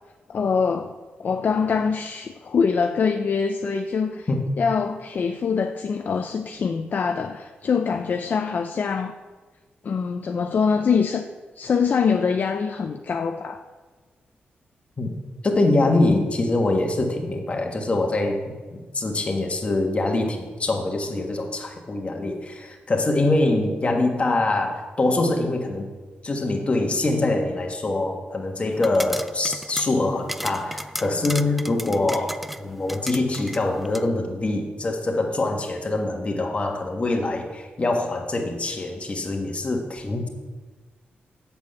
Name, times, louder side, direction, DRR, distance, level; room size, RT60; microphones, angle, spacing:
voice 1, 0.3-0.9 1.2-4.3 4.6-9.1 9.8-11.3 11.6-13.6, left 5 dB, 50° left, 6 dB, 0.5 m, -24 dB
voice 2, 15.4-25.9 26.2-40.3, left 2 dB, 35° left, 2 dB, 1.6 m, -24 dB
sound 1, 28.7-34.1, equal, ahead, 0.4 m, -35 dB
8.2 x 7.1 x 8.0 m, 1.3 s
wide cardioid pair, 115°, 4 cm